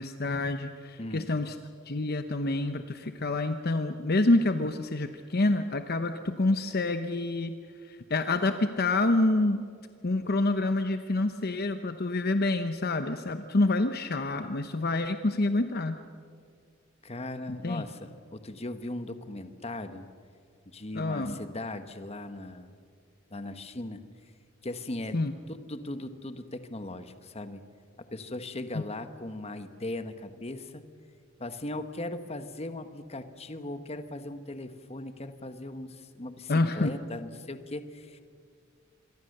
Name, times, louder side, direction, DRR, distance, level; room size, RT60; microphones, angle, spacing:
voice 1, 0.0-1.5 1.9-7.6 7.9-9.6 10.0-16.0 17.5-17.8 20.9-21.3 25.1-25.3 28.7-28.8 36.5-36.9, left 2 dB, 50° left, 9 dB, 0.9 m, -27 dB
voice 2, 1.0-1.3 17.0-20.0 20.6-22.7 23.3-24.0 24.6-25.2 25.5-27.6 28.1-30.8 31.4-38.2, left 2 dB, 30° left, 10 dB, 1.3 m, -38 dB
26.5 x 23.0 x 6.7 m, 2.2 s
head